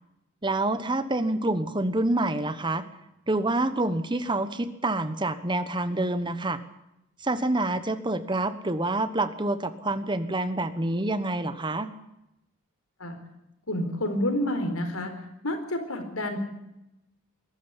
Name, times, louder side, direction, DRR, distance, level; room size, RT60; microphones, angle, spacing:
voice 1, 0.4-2.8 3.3-6.6 7.2-11.9, right 2 dB, 20° right, 12 dB, 1.2 m, -27 dB
voice 2, 13.7-15.1 15.4-16.4, left 1 dB, 90° left, 6 dB, 4.4 m, -29 dB
21.5 x 13.0 x 9.9 m, 0.87 s
head